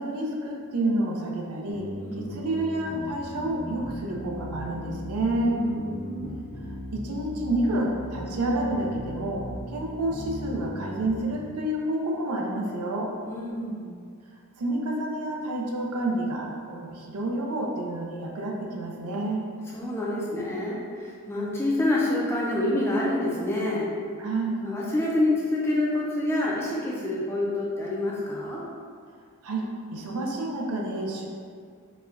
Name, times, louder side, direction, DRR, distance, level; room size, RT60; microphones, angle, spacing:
voice 1, 0.0-5.6 6.7-13.1 14.6-19.4 24.2-24.7 29.4-31.3, right 1 dB, 85° right, -1 dB, 0.5 m, -29 dB
sound 1, 1.7-11.2, equal, 85° left, 0.6 m, -37 dB
voice 2, 2.0-2.4 5.4-6.4 13.3-13.9 19.7-23.9 24.6-28.6, left 1 dB, 10° left, -5 dB, 0.4 m, -27 dB
4.1 x 2.2 x 2.5 m, 2.1 s
head